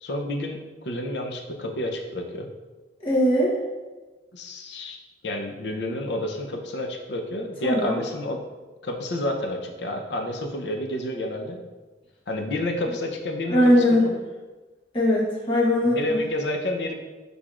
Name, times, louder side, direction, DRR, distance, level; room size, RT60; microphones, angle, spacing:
voice 1, 0.0-0.6 0.8-2.5 4.3-5.0 5.2-8.4 8.8-11.6 12.3-14.2 15.8-16.9, left 1 dB, 80° left, 3 dB, 0.6 m, -29 dB
voice 2, 3.0-3.6 7.6-7.9 13.5-14.1 14.9-16.2, left 1 dB, 30° left, -6 dB, 1.0 m, -20 dB
6.0 x 3.4 x 2.4 m, 1.2 s
head